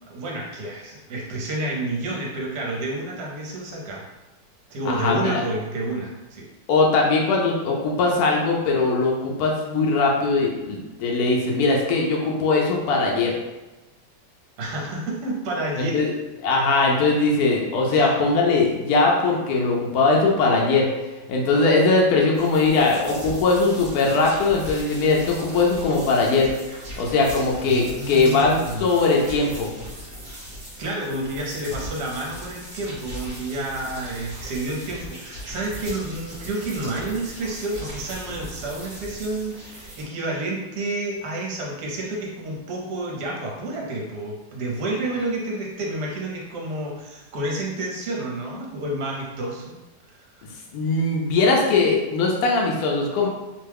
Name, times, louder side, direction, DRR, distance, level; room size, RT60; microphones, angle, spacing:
voice 1, 0.0-4.0 4.7-6.5 14.6-16.1 17.9-18.1 27.7-29.0 30.8-49.7, right 1 dB, 65° right, -2 dB, 1.3 m, -30 dB
voice 2, 4.8-5.4 6.7-13.3 15.8-16.1 16.4-20.9 21.3-26.5 27.0-29.7 50.7-53.3, left 3 dB, 70° left, -1 dB, 0.9 m, -20 dB
sound 1, 22.3-40.0, equal, 40° right, 1.0 m, -38 dB
3.1 x 2.2 x 3.3 m, 1.1 s
omnidirectional pair, 2.0 m